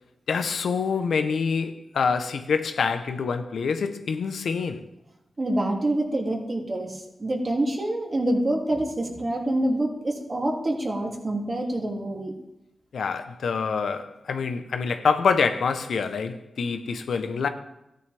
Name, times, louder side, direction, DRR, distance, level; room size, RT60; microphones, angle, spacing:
voice 1, 0.3-4.8 12.9-17.5, left 5 dB, 85° left, 0.8 m, -26 dB
voice 2, 5.4-12.3, right 1 dB, 45° right, 2.7 m, -26 dB
14.0 x 10.0 x 3.4 m
cardioid pair, 45°, 0 cm